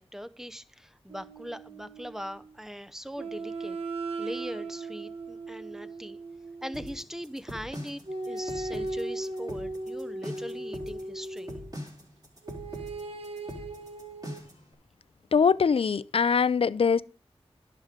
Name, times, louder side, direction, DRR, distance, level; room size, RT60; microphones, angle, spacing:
voice 1, 0.0-3.8 4.2-6.2 6.6-11.6, equal, 5° right, 0.6 m, -40 dB
sound 1, 1.1-2.5 3.2-7.0 8.0-11.7 12.4-14.4, right 2 dB, 65° right, 1.2 m, -38 dB
sound 2, 6.7-14.7, equal, 35° right, 3.6 m, -41 dB
voice 2, 15.3-17.0, left 6 dB, 60° left, 0.4 m, -22 dB
11.0 x 6.7 x 5.0 m
wide cardioid pair, 55°, 11 cm